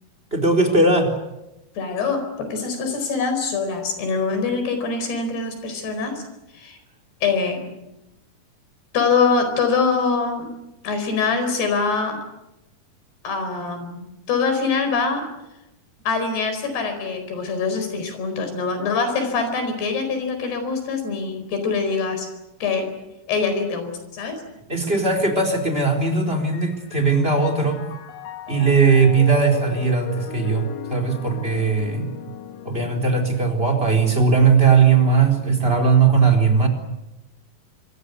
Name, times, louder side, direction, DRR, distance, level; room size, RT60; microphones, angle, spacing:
voice 1, 0.3-1.1 24.7-27.8 28.5-32.1 32.6-36.7, right 4 dB, 15° right, 6 dB, 4.0 m, -18 dB
voice 2, 1.8-6.2 6.5-6.8 7.2-7.7 8.9-10.5 10.8-12.2 13.2-15.3 16.0-22.3 22.6-22.9 23.3-24.4, left 4 dB, 85° left, 7 dB, 6.7 m, -24 dB
Piano, 26.5-36.0, left 8 dB, 55° left, 2.1 m, -38 dB
26.0 x 24.0 x 8.2 m, 0.93 s
omnidirectional pair, 4.6 m